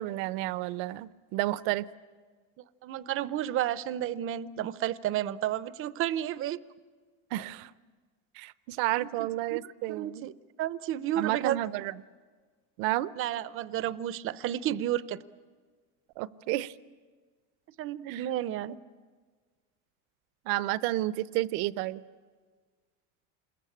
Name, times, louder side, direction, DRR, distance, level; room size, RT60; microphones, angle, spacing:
voice 1, 0.0-1.9 7.3-7.7 8.4-10.3 11.2-11.9 12.8-13.1 16.2-16.7 18.1-18.2 20.5-22.0, right 16 dB, 70° right, 17 dB, 0.8 m, -31 dB
voice 2, 2.6-6.6 9.0-9.6 9.9-10.3 10.6-11.6 13.2-15.2 17.8-18.8, right 12 dB, 35° right, 16 dB, 0.7 m, -32 dB
27.0 x 21.5 x 8.7 m, 1.5 s
cardioid pair, 140°, 36 cm